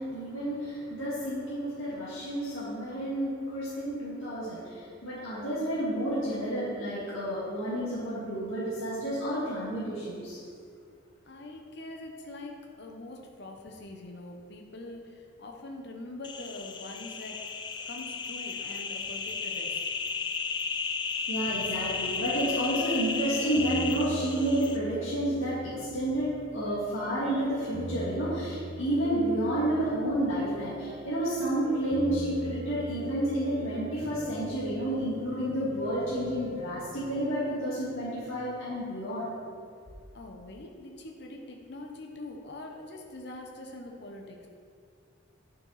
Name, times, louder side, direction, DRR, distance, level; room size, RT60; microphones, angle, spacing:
voice 1, 0.0-10.4 21.3-39.3, right 1 dB, 80° left, -10 dB, 1.9 m, -30 dB
voice 2, 11.3-17.6 17.9-19.9 40.1-44.5, left 2 dB, 55° left, 1 dB, 0.8 m, -44 dB
sound 1, 16.2-24.8, left 5 dB, 25° left, 0.3 m, -34 dB
sound 2, 21.5-38.2, right 1 dB, 20° right, 1.3 m, -43 dB
9.6 x 5.9 x 4.0 m, 2.3 s
head